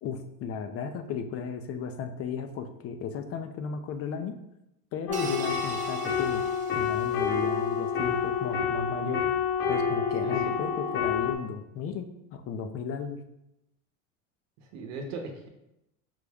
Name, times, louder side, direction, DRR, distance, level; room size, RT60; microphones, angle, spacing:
voice 1, 0.0-4.4 4.9-6.4 6.7-9.2 9.7-13.2, left 6 dB, 35° left, 7 dB, 0.4 m, -35 dB
sound 1, 5.1-11.3, left 6 dB, 50° left, 1.0 m, -28 dB
sound 2, 5.1-7.6, right 5 dB, 20° right, 0.4 m, -42 dB
voice 2, 14.6-15.5, right 3 dB, 65° right, 3 dB, 0.9 m, -38 dB
5.3 x 2.2 x 3.4 m, 0.85 s
hypercardioid pair, 100°, 40 cm